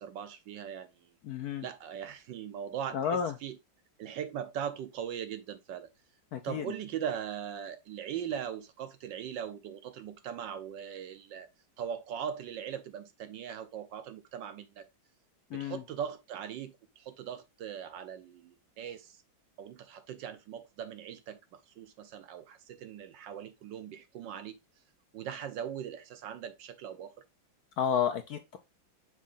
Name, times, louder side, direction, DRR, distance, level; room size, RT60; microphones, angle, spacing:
voice 1, 0.0-1.1 1.6-3.6 4.0-5.9 6.4-11.5 11.8-14.8 15.5-19.2 19.6-24.6 25.1-27.1, right 8 dB, 70° right, 1.3 m, -40 dB
voice 2, 1.2-1.7 2.9-3.3 6.3-6.6 15.5-15.8 27.8-28.6, left 8 dB, 65° left, 1.0 m, -31 dB
6.3 x 2.8 x 5.5 m
omnidirectional pair, 2.2 m